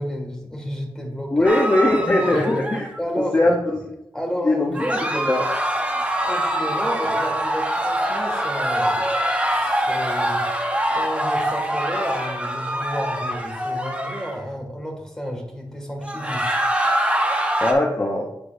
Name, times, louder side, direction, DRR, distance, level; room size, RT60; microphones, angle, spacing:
voice 1, 0.0-1.5 2.2-2.4 3.0-3.8 4.1-5.4 6.2-9.1 9.5-10.4 10.9-16.6, equal, 5° left, 0 dB, 1.8 m, -31 dB
voice 2, 1.3-2.9 3.2-3.8 4.4-4.8 5.2-5.5 17.6-18.3, left 2 dB, 25° left, -1 dB, 0.8 m, -20 dB
sound 1, 1.4-3.0 4.7-14.4 16.0-17.7, right 1 dB, 15° right, 0.9 m, -24 dB
10.0 x 4.7 x 2.5 m, 0.85 s
wide cardioid pair, 115°, 9 cm